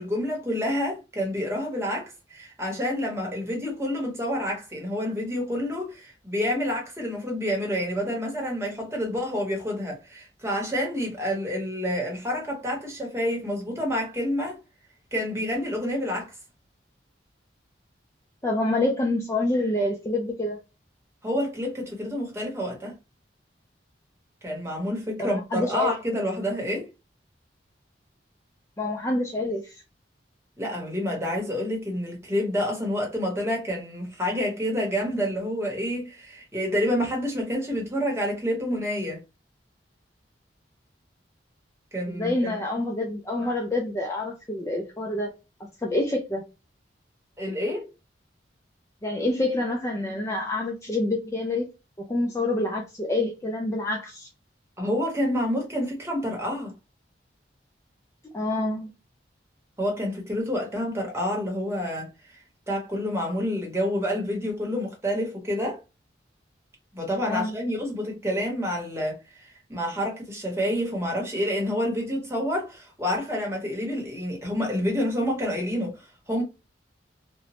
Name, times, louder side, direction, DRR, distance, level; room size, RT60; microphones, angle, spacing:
voice 1, 0.0-14.6 15.1-16.3 21.2-22.9 24.4-26.9 30.6-39.2 41.9-42.6 47.4-47.9 54.8-56.7 59.8-62.4 62.7-65.8 66.9-76.4, equal, 15° right, 0.9 m, -28 dB
voice 2, 18.4-20.6 25.2-25.9 28.8-29.8 42.1-45.3 45.6-46.4 49.0-51.7 52.0-54.3 58.3-58.9 67.3-67.6, left 2 dB, 15° left, 0.3 m, -27 dB
2.9 x 2.1 x 2.8 m
head